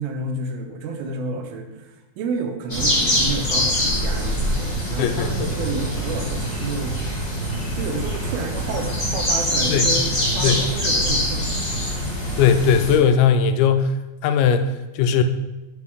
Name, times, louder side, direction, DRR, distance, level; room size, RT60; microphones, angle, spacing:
voice 1, 0.0-7.0 7.7-11.5, right 3 dB, 85° right, 4 dB, 2.7 m, -30 dB
sound 1, 2.7-12.9, equal, 20° left, 2.3 m, -24 dB
voice 2, 5.0-5.5 9.7-9.9 10.4-10.6 12.4-14.0 14.2-15.2, left 7 dB, 90° left, 9 dB, 2.5 m, -18 dB
9.7 x 5.1 x 3.5 m, 1.0 s
omnidirectional pair, 4.3 m